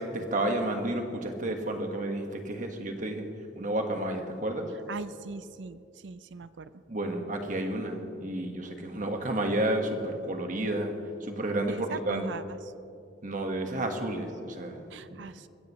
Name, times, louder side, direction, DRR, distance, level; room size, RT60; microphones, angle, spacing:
voice 1, 0.0-3.3 3.5-4.7 6.9-10.9 11.2-12.2 13.2-15.2, right 1 dB, 45° right, 4 dB, 1.6 m, -31 dB
voice 2, 4.9-6.7 11.7-12.6 14.9-15.5, right 3 dB, 80° right, 14 dB, 0.5 m, -40 dB
23.0 x 15.5 x 3.2 m, 2.6 s
head